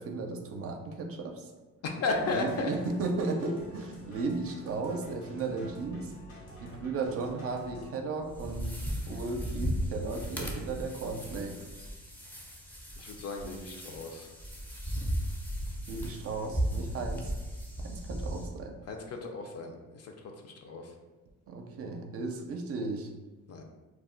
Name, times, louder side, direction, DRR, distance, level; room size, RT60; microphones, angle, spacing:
voice 1, 0.0-1.5 2.2-6.1 6.6-11.7 15.9-17.3 17.8-18.8 21.5-23.1, right 3 dB, 50° right, 3 dB, 0.4 m, -35 dB
voice 2, 1.8-2.7 13.0-14.3 18.9-20.1 20.4-20.9 23.5-23.6, left 3 dB, 55° left, 3 dB, 0.5 m, -34 dB
sound 1, 2.1-7.9, equal, 85° left, 1.0 m, -49 dB
sound 2, 8.2-18.5, equal, 5° left, 0.5 m, -36 dB
2.3 x 2.0 x 3.7 m, 1.2 s
cardioid pair, 90°, 30 cm